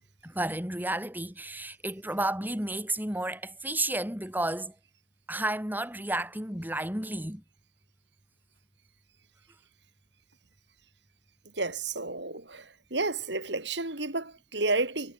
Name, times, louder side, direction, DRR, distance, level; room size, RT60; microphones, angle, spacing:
voice 1, 0.2-4.7 5.3-7.4, right 1 dB, 10° right, 5.6 m, -32 dB
voice 2, 11.5-15.1, right 3 dB, 65° right, 5.8 m, -31 dB
head